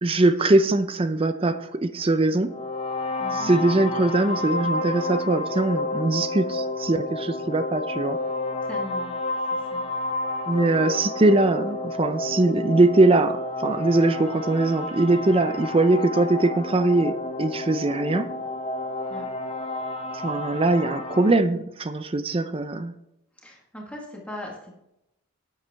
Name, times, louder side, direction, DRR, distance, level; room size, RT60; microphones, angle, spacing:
voice 1, 0.0-2.5 3.3-8.2 10.5-18.3 20.1-22.9, right 2 dB, 25° right, 10 dB, 0.5 m, -21 dB
sound 1, 2.5-21.3, left 2 dB, 25° left, 0.8 m, -30 dB
voice 2, 3.2-3.5 8.6-9.1 9.5-9.9 19.1-19.3 23.4-24.8, left 1 dB, 5° left, -2 dB, 1.5 m, -39 dB
11.0 x 8.1 x 3.4 m, 0.85 s
head